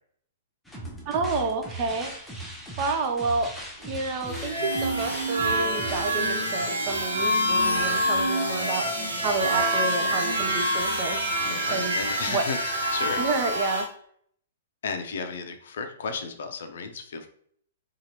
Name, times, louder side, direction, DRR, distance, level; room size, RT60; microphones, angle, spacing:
sound 1, 0.6-6.2, equal, ahead, 0.7 m, -39 dB
voice 1, 1.1-2.1 2.8-3.5 3.8-8.9 9.2-11.4 11.7-11.9 12.3-12.4 13.2-13.9, right 3 dB, 40° right, 6 dB, 0.4 m, -29 dB
sound 2, 4.3-13.9, right 1 dB, 90° right, 0.9 m, -26 dB
voice 2, 11.4-13.2 14.8-17.3, left 5 dB, 65° left, 6 dB, 0.4 m, -33 dB
2.8 x 2.4 x 2.9 m, 0.63 s
hypercardioid pair, 115°, 0 cm